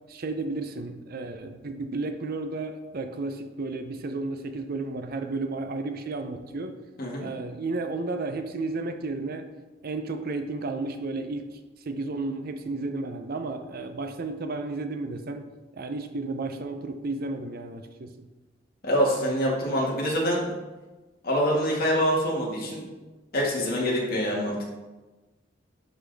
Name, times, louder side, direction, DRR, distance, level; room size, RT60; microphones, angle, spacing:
voice 1, 0.1-6.7 7.2-9.5 9.8-11.6 11.9-15.5 15.7-18.3, right 3 dB, 50° right, 7 dB, 0.6 m, -33 dB
voice 2, 18.8-20.4 21.2-22.9 23.3-24.7, equal, 50° left, -3 dB, 1.8 m, -25 dB
11.0 x 4.1 x 3.4 m, 1.2 s
head